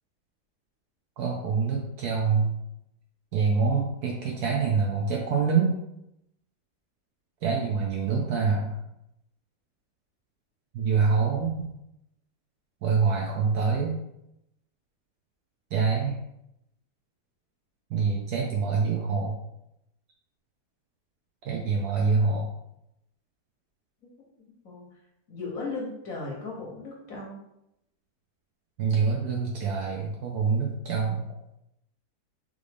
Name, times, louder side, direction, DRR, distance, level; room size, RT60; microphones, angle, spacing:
voice 1, 1.2-2.5 3.3-5.8 7.4-8.7 10.7-11.7 12.8-14.0 15.7-16.2 17.9-19.4 21.5-22.5 28.8-31.2, right 5 dB, 70° right, -1 dB, 0.9 m, -25 dB
voice 2, 24.6-25.0 25.3-27.4, left 3 dB, 60° left, -2 dB, 1.0 m, -36 dB
3.8 x 3.4 x 3.3 m, 0.85 s
omnidirectional pair, 2.0 m